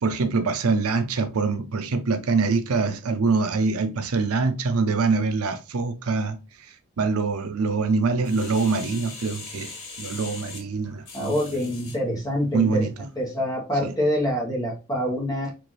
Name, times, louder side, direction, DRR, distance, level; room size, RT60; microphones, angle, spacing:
voice 1, 0.0-11.4 12.5-12.9 13.8-13.9, right 4 dB, 80° right, 0.6 m, -24 dB
sound 1, 8.2-12.0 12.6-12.7, left 4 dB, 60° left, 1.9 m, -40 dB
voice 2, 11.1-15.5, equal, 15° left, 1.0 m, -26 dB
4.5 x 2.6 x 3.1 m
head